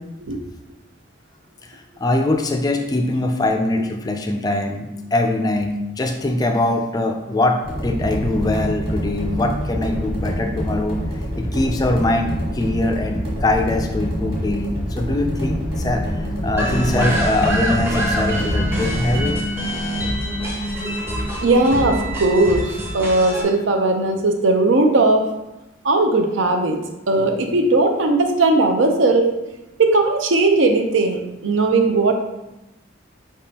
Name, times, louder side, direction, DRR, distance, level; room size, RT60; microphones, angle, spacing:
voice 1, 1.6-11.0 11.4-19.4, left 2 dB, 20° left, 4 dB, 0.3 m, -22 dB
sound 1, 7.6-19.4, equal, 30° right, 1.4 m, -26 dB
sound 2, 15.2-23.0, equal, 85° left, 0.6 m, -30 dB
sound 3, 16.6-23.4, equal, 10° right, 0.6 m, -26 dB
voice 2, 21.4-25.2 25.8-26.8 27.1-29.3 29.8-32.1, right 2 dB, 80° right, 5 dB, 0.6 m, -18 dB
5.0 x 3.5 x 2.8 m, 0.95 s
head